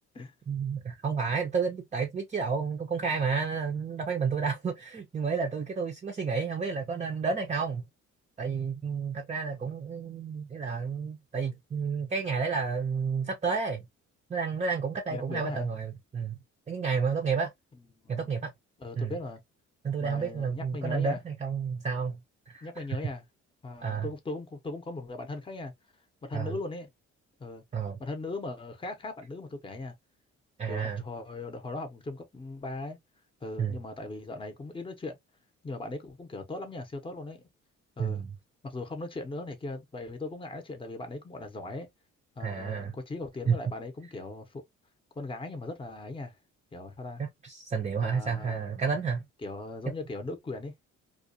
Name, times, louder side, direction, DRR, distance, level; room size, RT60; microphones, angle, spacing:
voice 1, 0.5-7.8 8.4-13.8 14.3-16.4 16.7-17.5 18.1-18.5 19.0-19.1 19.8-22.2 22.5-22.8 23.8-24.1 26.3-26.5 27.7-28.0 30.6-31.0 33.6-33.7 38.0-38.3 42.4-42.9 43.5-43.6 47.4-49.2, right 5 dB, 25° right, 0.5 m, -31 dB
voice 2, 15.1-15.7 18.0-18.5 18.8-19.4 20.0-21.2 22.6-23.2 23.6-25.7 26.2-26.9 27.4-27.6 28.0-29.9 30.7-33.0 33.4-35.2 35.6-37.4 38.0-38.3 38.6-41.9 42.4-44.6 45.2-46.3 46.7-47.2 48.0-48.6 49.4-50.9, left 2 dB, 15° left, 0.7 m, -39 dB
2.3 x 2.2 x 2.5 m
cardioid pair, 90°, 30 cm